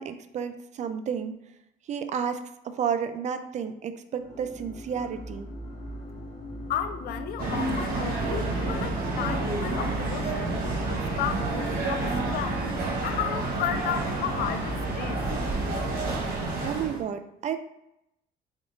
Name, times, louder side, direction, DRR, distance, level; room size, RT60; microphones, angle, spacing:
voice 1, 0.0-1.3 1.9-5.5 16.6-17.6, right 7 dB, 45° right, 0.4 m, -31 dB
sound 1, 4.2-16.1, right 1 dB, 50° left, 0.9 m, -37 dB
voice 2, 6.7-15.2, left 9 dB, 65° left, 0.4 m, -34 dB
sound 2, 7.4-17.0, right 2 dB, 60° right, 1.1 m, -30 dB
3.6 x 3.6 x 2.6 m
cardioid pair, 110°, 17 cm